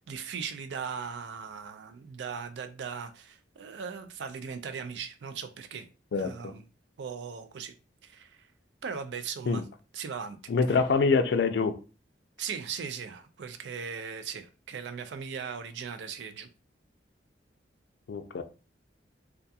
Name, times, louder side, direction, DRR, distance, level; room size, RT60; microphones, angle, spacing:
voice 1, 0.1-5.9 6.2-6.6 7.0-7.7 8.0-8.4 8.8-9.6 9.9-10.4 12.4-16.5, right 6 dB, 70° right, 0.3 m, -38 dB
voice 2, 10.5-11.8 18.1-18.4, left 4 dB, 65° left, 0.3 m, -25 dB
2.3 x 2.3 x 2.6 m
head